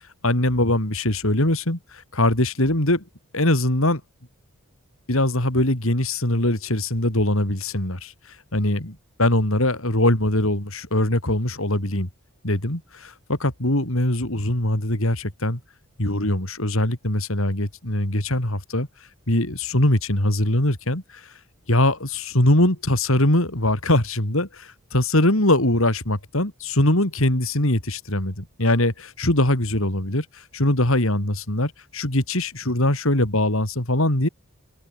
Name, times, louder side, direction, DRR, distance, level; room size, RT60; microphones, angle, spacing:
voice 1, 0.2-3.0 3.3-4.0 5.1-8.1 8.5-12.1 12.4-15.6 16.0-18.9 19.3-21.2 21.7-34.3, left 1 dB, 65° left, 4.3 m, -22 dB
open air
head